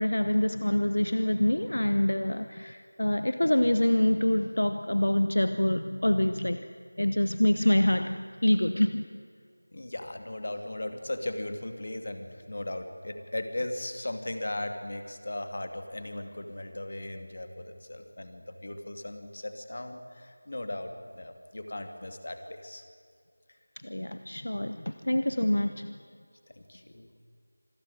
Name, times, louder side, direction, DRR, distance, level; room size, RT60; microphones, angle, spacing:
voice 1, 0.0-6.7 7.0-9.1 23.8-26.0, left 1 dB, 85° left, 11 dB, 0.9 m, -26 dB
voice 2, 9.7-22.8 26.5-27.1, left 1 dB, 55° left, 7 dB, 2.5 m, -37 dB
25.5 x 14.0 x 9.8 m, 2.2 s
figure-of-eight pair, 175°, 0 cm